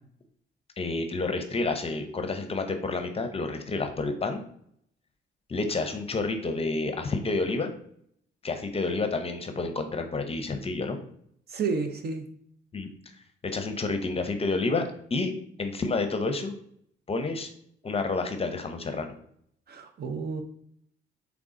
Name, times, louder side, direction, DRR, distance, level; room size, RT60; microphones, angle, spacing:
voice 1, 0.8-4.4 5.5-7.7 8.4-11.0 12.7-12.9 13.4-14.8 15.1-15.3 15.6-16.5 17.1-17.5 17.8-19.1, left 3 dB, 30° left, 6 dB, 0.6 m, -29 dB
voice 2, 11.5-12.2 19.7-20.4, right 4 dB, 55° right, 5 dB, 0.8 m, -31 dB
3.8 x 3.5 x 3.7 m, 0.67 s
cardioid pair, 90°, 20 cm